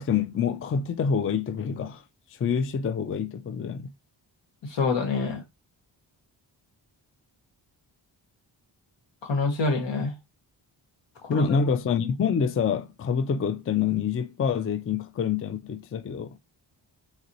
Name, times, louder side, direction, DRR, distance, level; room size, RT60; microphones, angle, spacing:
voice 1, 0.0-2.0 2.3-3.9 11.3-16.3, left 6 dB, 30° left, 0.4 m, -26 dB
voice 2, 4.6-5.4 9.2-10.1 11.2-11.6, left 3 dB, 75° left, 1.3 m, -26 dB
4.0 x 2.9 x 2.6 m
cardioid pair, 70°, 44 cm